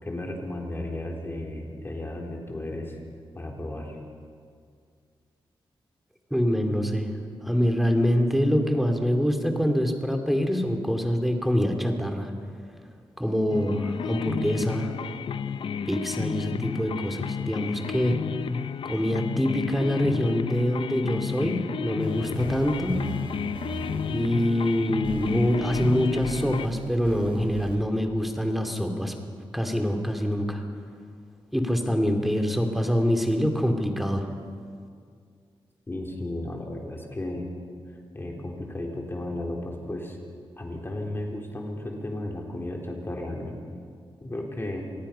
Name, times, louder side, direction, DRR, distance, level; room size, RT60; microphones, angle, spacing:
voice 1, 0.0-3.0 3.3-4.0 35.9-37.5 38.1-40.2 40.6-43.6 44.2-44.8, left 1 dB, 25° left, 0 dB, 3.4 m, -34 dB
voice 2, 6.3-7.1 7.4-12.3 13.2-14.9 15.9-18.2 18.8-22.9 24.1-29.1 29.5-30.6 31.5-34.3, equal, ahead, 4 dB, 2.5 m, -25 dB
sound 1, 13.5-26.7, left 7 dB, 70° left, 0.6 m, -32 dB
sound 2, 22.0-27.8, right 4 dB, 65° right, 3.0 m, -40 dB
27.0 x 18.5 x 5.7 m, 2.2 s
wide cardioid pair, 95°, 9 cm